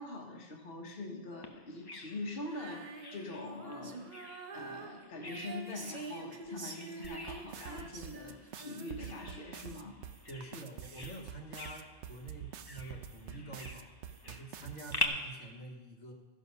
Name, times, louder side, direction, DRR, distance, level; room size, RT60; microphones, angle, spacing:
voice 1, 0.0-4.1 4.5-10.0, left 2 dB, 50° left, 0 dB, 1.4 m, -43 dB
Bird vocalization bird call bird song, 1.4-15.1, left 3 dB, 25° left, 0.6 m, -45 dB
Female singing, 2.4-9.8, right 3 dB, 40° right, 0.9 m, -46 dB
sound 1, 7.0-15.0, right 9 dB, 75° right, 0.9 m, -46 dB
voice 2, 10.3-13.9 14.2-16.1, right 1 dB, 80° left, 0 dB, 1.7 m, -47 dB
14.0 x 6.2 x 5.4 m, 1.2 s
omnidirectional pair, 1.2 m